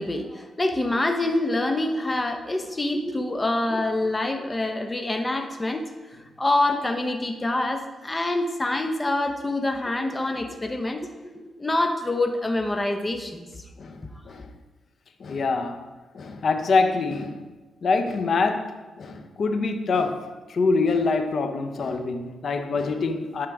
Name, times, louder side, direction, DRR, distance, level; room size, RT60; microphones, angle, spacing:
voice 1, 0.0-5.8 6.4-11.1 11.3-13.5, left 2 dB, 20° left, 5 dB, 0.9 m, -26 dB
voice 2, 13.8-14.5 15.2-15.8 16.1-17.4 17.8-23.5, left 4 dB, 60° left, 7 dB, 0.7 m, -25 dB
10.5 x 4.9 x 3.5 m, 1.2 s
cardioid pair, 80°, 0 cm